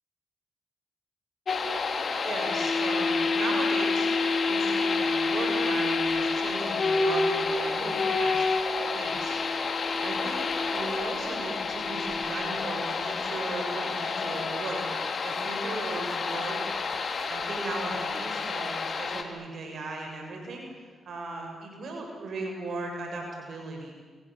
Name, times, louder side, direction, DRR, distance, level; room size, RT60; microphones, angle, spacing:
sound 1, 1.5-19.2, left 4 dB, 55° left, 3.4 m, -28 dB
voice 1, 2.2-4.1 4.5-8.5 8.9-9.4 10.0-16.6 17.3-20.7 21.1-23.9, right 2 dB, 65° right, 2 dB, 6.8 m, -37 dB
29.0 x 26.5 x 7.6 m, 1.4 s
supercardioid pair, 55°, 0 cm